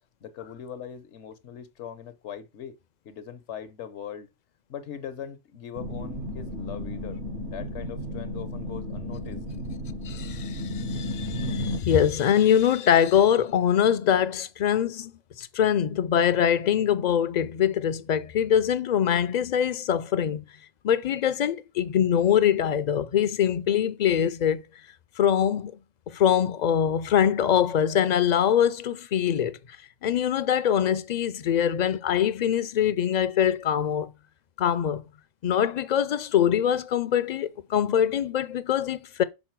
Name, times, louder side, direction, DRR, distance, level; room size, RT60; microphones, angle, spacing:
voice 1, 0.2-2.8 3.0-4.3 4.7-7.2 7.4-9.5, left 9 dB, 80° left, 1.1 m, -40 dB
sound 1, 5.7-11.8, left 1 dB, 75° right, 1.6 m, -33 dB
voice 2, 10.0-15.1 15.4-20.4 20.8-24.6 25.2-25.8 26.1-29.6 30.0-34.1 34.6-35.0 35.4-39.2, left 9 dB, 55° left, 0.5 m, -23 dB
6.3 x 4.2 x 4.5 m
omnidirectional pair, 1.2 m